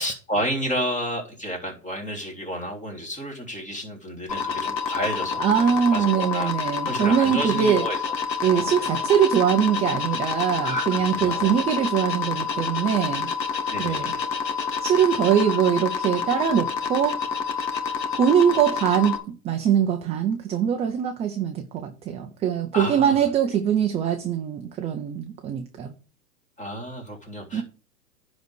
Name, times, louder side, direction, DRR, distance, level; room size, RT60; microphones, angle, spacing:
voice 1, 0.0-6.5 6.8-8.0 8.4-9.0 10.6-11.7 13.7-14.2 15.2-15.6 22.7-23.2 26.6-27.6, equal, 15° left, 3.6 m, -31 dB
sound 1, 4.3-19.2, left 6 dB, 90° left, 2.0 m, -28 dB
voice 2, 5.4-7.8 8.4-13.3 13.8-14.1 14.8-17.2 18.1-19.2 19.4-25.9 27.5-27.6, right 8 dB, 15° right, 0.5 m, -22 dB
10.0 x 4.1 x 6.3 m
hypercardioid pair, 125°, 50 cm